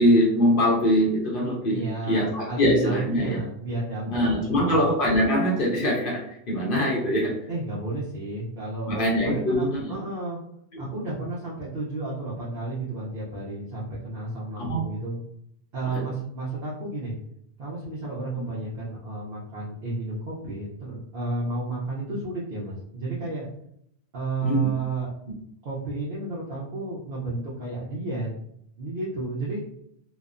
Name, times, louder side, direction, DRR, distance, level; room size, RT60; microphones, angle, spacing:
voice 1, 0.0-1.8 2.1-3.4 4.0-7.3 8.9-9.9 10.7-10.8 14.6-14.8 15.8-16.0 18.3-18.4 24.4-24.7, equal, 60° left, -3 dB, 0.8 m, -23 dB
voice 2, 1.7-4.1 4.4-4.8 7.5-10.4 10.8-15.2 15.7-17.1 17.6-23.4 24.1-25.1 25.6-28.3 28.8-29.6, right 2 dB, 60° right, -6 dB, 0.9 m, -32 dB
3.1 x 2.1 x 2.4 m, 0.73 s
omnidirectional pair, 1.1 m